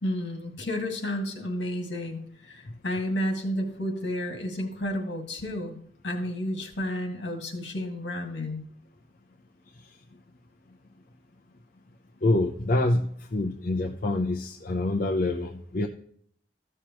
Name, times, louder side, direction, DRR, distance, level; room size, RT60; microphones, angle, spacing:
voice 1, 0.0-5.8 6.0-8.6, left 1 dB, 70° left, 4 dB, 2.0 m, -31 dB
voice 2, 12.2-15.9, left 2 dB, 45° left, 2 dB, 0.6 m, -26 dB
14.0 x 6.7 x 3.0 m, 0.62 s
head